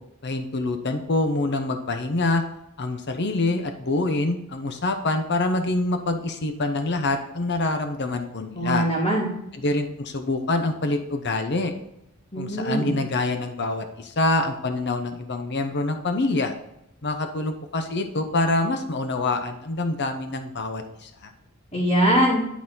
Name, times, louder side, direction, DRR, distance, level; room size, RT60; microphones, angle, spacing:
voice 1, 0.2-2.5 2.8-8.9 9.5-11.7 12.4-16.5 17.0-21.3, left 2 dB, 50° left, 6 dB, 0.8 m, -26 dB
voice 2, 8.5-9.3 12.3-12.9 21.7-22.4, right 1 dB, 25° left, -10 dB, 2.2 m, -22 dB
11.0 x 4.1 x 4.0 m, 0.82 s
head